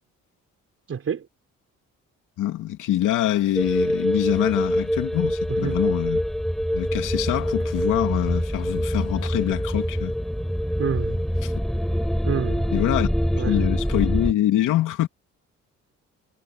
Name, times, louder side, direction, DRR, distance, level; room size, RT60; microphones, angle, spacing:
voice 1, 0.9-1.3 5.5-5.8 10.8-11.2 12.2-12.7 13.3-13.6, right 7 dB, 50° right, 4.6 m, -28 dB
voice 2, 2.4-6.2 6.7-10.2 11.4-11.5 12.7-13.1 13.4-15.1, left 13 dB, 85° left, 2.9 m, -24 dB
sound 1, 3.6-14.3, equal, ahead, 6.5 m, -25 dB
cardioid pair, 90°, 30 cm